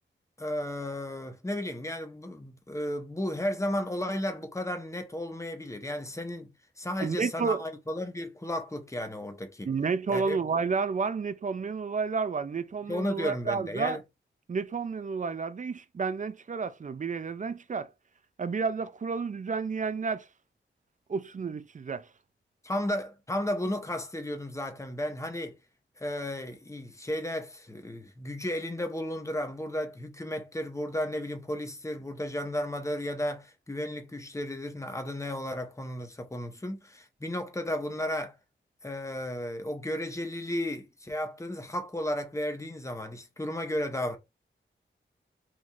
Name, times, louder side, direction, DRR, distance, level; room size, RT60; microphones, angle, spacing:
voice 1, 0.4-6.5 6.8-9.7 10.1-10.4 12.9-14.0 22.6-25.6 26.0-38.4 38.8-44.2, left 1 dB, 15° left, 0.8 m, -34 dB
voice 2, 7.0-7.6 9.6-14.0 14.5-17.9 18.4-20.3 21.1-22.0, right 5 dB, 40° right, 0.4 m, -31 dB
2.9 x 2.6 x 3.7 m
wide cardioid pair, 85°, 21 cm